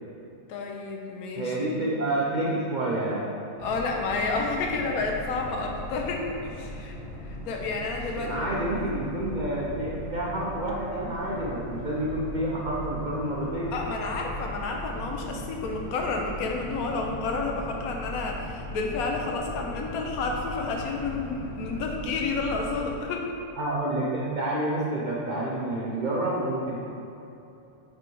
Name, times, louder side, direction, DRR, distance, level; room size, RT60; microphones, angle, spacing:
voice 1, 0.5-1.8 3.6-6.9 7.4-8.9 13.7-23.3, left 3 dB, 65° left, 1 dB, 1.2 m, -30 dB
voice 2, 1.3-3.2 8.1-13.7 23.6-26.8, right 1 dB, 50° right, -5 dB, 0.5 m, -29 dB
Boat Water vehicle, 3.6-23.0, left 1 dB, 5° right, 1.2 m, -39 dB
7.9 x 3.5 x 4.5 m, 2.8 s
omnidirectional pair, 1.7 m